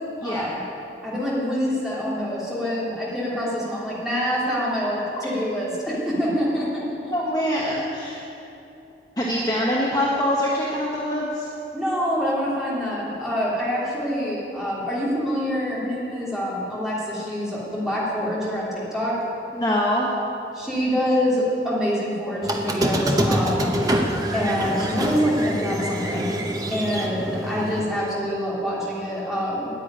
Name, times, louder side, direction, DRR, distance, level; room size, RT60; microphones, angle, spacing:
voice 1, 1.0-6.8 11.7-19.1 20.5-23.7 24.3-26.3 26.7-29.7, equal, ahead, -8 dB, 3.1 m, -25 dB
voice 2, 7.1-8.2 9.2-11.5 19.5-20.1, equal, 20° left, -4 dB, 1.1 m, -24 dB
Squeak, 22.4-27.8, right 1 dB, 20° right, 0.8 m, -25 dB
10.0 x 8.5 x 9.8 m, 2.9 s
head